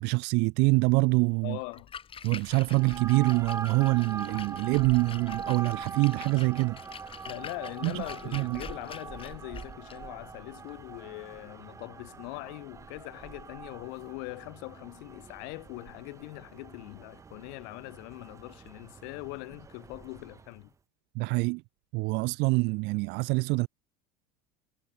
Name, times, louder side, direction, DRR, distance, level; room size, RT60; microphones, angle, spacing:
voice 1, 0.0-1.6 2.2-6.8 7.8-8.0 8.3-8.6 21.2-21.6 21.9-23.7, right 28 dB, 60° right, 0.5 m, -25 dB
voice 2, 1.4-1.9 7.2-20.7, left 40 dB or more, 70° left, 4.9 m, -42 dB
Splash splatter, 1.6-11.5, left 7 dB, 25° left, 1.9 m, -47 dB
sound 1, 2.7-20.6, right 5 dB, 15° right, 0.5 m, -43 dB
supercardioid pair, 120°, 20 cm